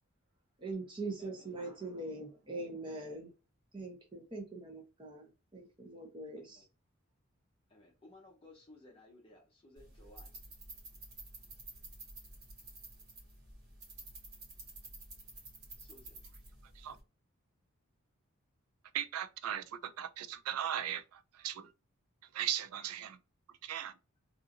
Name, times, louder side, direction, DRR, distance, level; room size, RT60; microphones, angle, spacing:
voice 1, 0.6-3.3 3.7-6.7, right 2 dB, 20° right, 0.8 m, -42 dB
voice 2, 7.7-10.3 15.8-16.2, left 2 dB, 25° left, 0.6 m, -58 dB
sound 1, 9.8-17.0, right 2 dB, 45° right, 1.3 m, -51 dB
voice 3, 18.9-21.7 22.3-23.2 23.6-23.9, right 10 dB, 85° right, 0.3 m, -38 dB
2.7 x 2.5 x 2.5 m
head